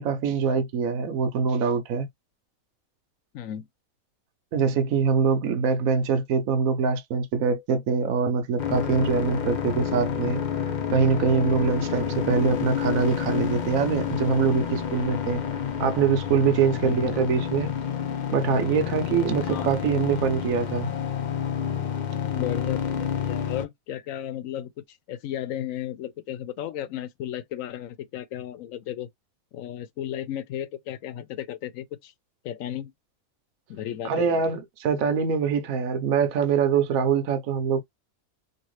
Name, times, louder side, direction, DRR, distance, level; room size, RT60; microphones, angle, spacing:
voice 1, 0.0-2.1 4.5-10.4 10.9-15.4 15.8-17.7 18.3-20.9 34.0-37.8, right 6 dB, 75° right, 1.1 m, -24 dB
voice 2, 3.3-3.7 15.4-15.5 16.7-17.1 19.4-19.7 22.2-24.7 25.1-29.1 29.5-32.1 32.4-32.9 33.7-34.3, left 11 dB, 75° left, 1.0 m, -34 dB
sound 1, 8.6-23.7, left 8 dB, 50° left, 0.5 m, -29 dB
2.9 x 2.7 x 3.1 m
omnidirectional pair, 1.5 m